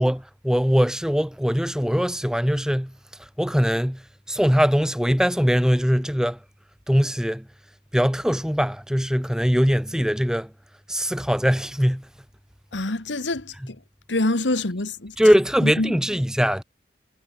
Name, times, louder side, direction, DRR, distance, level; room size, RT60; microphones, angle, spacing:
voice 1, 0.0-2.9 3.4-4.0 4.3-6.4 6.9-7.4 7.9-10.5 10.9-12.0 15.2-16.6, equal, 5° right, 1.6 m, -21 dB
voice 2, 12.7-13.8 14.1-15.2 15.6-16.0, left 2 dB, 80° left, 1.9 m, -26 dB
head